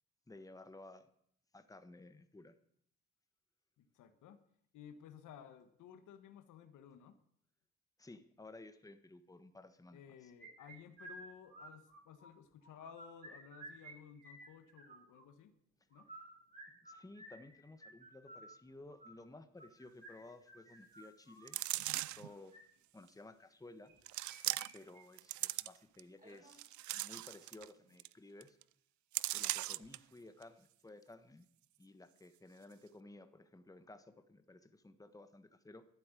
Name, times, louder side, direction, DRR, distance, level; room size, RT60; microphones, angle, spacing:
voice 1, 0.3-1.1 1.5-2.6 8.0-10.3 16.7-22.5 22.9-23.9 24.7-28.6 29.3-31.5 31.8-35.8, left 2 dB, 10° left, 9 dB, 1.3 m, -56 dB
voice 2, 3.8-4.4 4.7-7.2 9.9-15.5 15.9-16.1, left 8 dB, 85° left, 9 dB, 1.5 m, -56 dB
sound 1, 10.4-12.3 12.6-13.9 14.2-15.2 15.9-21.5 22.3-22.6 23.8-24.7 24.9-25.0 25.5-25.6 26.2-26.6, right 2 dB, 25° right, 4.8 m, -54 dB
sound 2, 21.5-22.3 23.1-23.2 24.1-24.9 25.2-26.0 26.5-27.7 28.0-28.1 28.4-28.6 29.1-30.0 30.4-30.5, right 17 dB, 75° right, 0.5 m, -39 dB
12.0 x 9.5 x 9.1 m, 0.66 s
cardioid pair, 90°, 30 cm